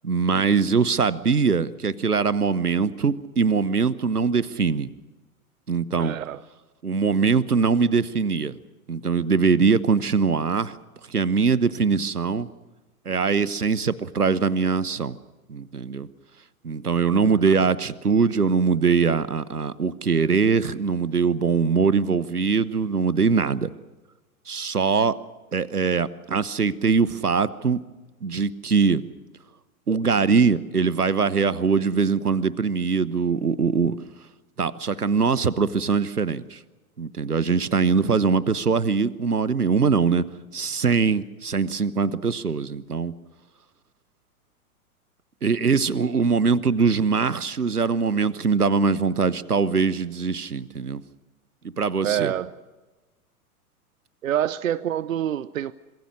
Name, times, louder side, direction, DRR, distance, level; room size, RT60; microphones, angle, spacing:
voice 1, 0.0-4.9 5.7-6.2 6.8-8.5 8.9-10.8 11.1-12.5 13.1-15.2 15.5-16.1 16.6-23.7 24.5-25.1 25.5-27.8 28.2-29.0 29.9-34.0 34.6-36.6 37.0-40.2 40.5-43.1 45.4-51.0 51.8-52.3, right 5 dB, 85° right, 18 dB, 1.1 m, -22 dB
voice 2, 6.0-6.4 17.2-17.4 52.0-52.5 54.2-55.7, right 10 dB, 60° right, 18 dB, 0.8 m, -26 dB
25.5 x 22.5 x 6.4 m, 1.2 s
figure-of-eight pair, 100°, 44 cm